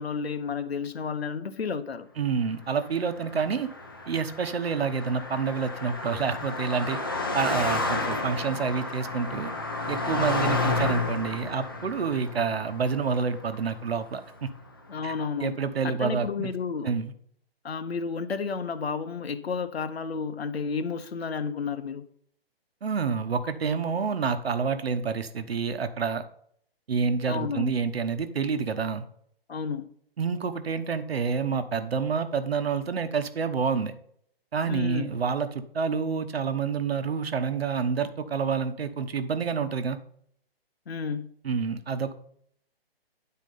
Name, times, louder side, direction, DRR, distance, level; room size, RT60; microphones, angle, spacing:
voice 1, 0.0-2.1 14.9-15.6 15.8-16.9 17.6-22.0 27.3-27.7 29.5-29.9 34.7-35.1 40.9-41.3, left 5 dB, 80° left, 1.0 m, -31 dB
voice 2, 2.2-3.7 4.1-7.0 7.3-9.5 9.9-14.5 15.0-15.1 15.4-16.5 16.8-17.1 22.8-26.2 26.9-29.0 30.2-33.9 34.5-40.0 41.4-42.1, right 5 dB, 75° right, 1.1 m, -28 dB
Car passing by, 2.9-14.4, left 3 dB, 20° left, 0.6 m, -32 dB
10.5 x 4.4 x 5.4 m
hypercardioid pair, 175°, 31 cm